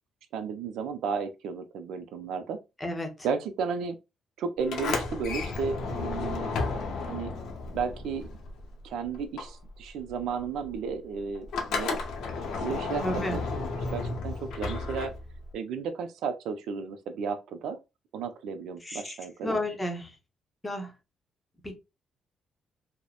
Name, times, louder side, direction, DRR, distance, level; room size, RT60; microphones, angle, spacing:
voice 1, 0.3-2.6 3.2-4.0 4.4-6.5 7.1-7.3 7.7-8.3 8.8-12.0 12.6-15.1 15.5-17.8 18.1-19.6, right 5 dB, 80° right, 0.4 m, -33 dB
voice 2, 2.8-3.1 13.0-13.4 18.8-20.2 20.6-20.9 21.6-21.7, left 1 dB, 15° left, 0.7 m, -32 dB
Sliding door, 4.6-8.9 9.1-15.5, left 3 dB, 80° left, 0.5 m, -33 dB
2.8 x 2.0 x 2.3 m
cardioid pair, 90°, 0 cm